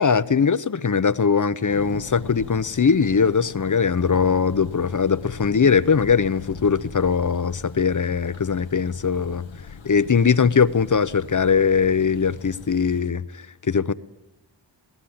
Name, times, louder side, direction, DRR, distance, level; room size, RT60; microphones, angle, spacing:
voice 1, 0.0-9.5 9.8-13.9, left 6 dB, 40° left, 16 dB, 0.7 m, -21 dB
Thunder, 1.7-13.0, left 6 dB, 85° left, 1.0 m, -40 dB
21.5 x 17.5 x 8.7 m, 1.1 s
wide cardioid pair, 60°, 45 cm